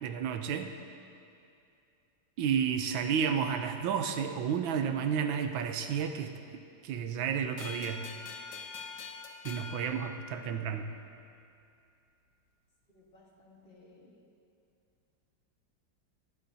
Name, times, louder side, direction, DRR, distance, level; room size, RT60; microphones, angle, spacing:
voice 1, 0.0-0.7 2.4-6.3 6.8-8.0 9.4-10.9, right 7 dB, 90° right, 7 dB, 1.5 m, -31 dB
sound 1, 7.6-10.8, left 5 dB, 70° left, 1.6 m, -44 dB
voice 2, 12.9-14.2, left 2 dB, 30° left, -2 dB, 1.5 m, -59 dB
18.0 x 11.5 x 2.7 m, 2.5 s
omnidirectional pair, 2.1 m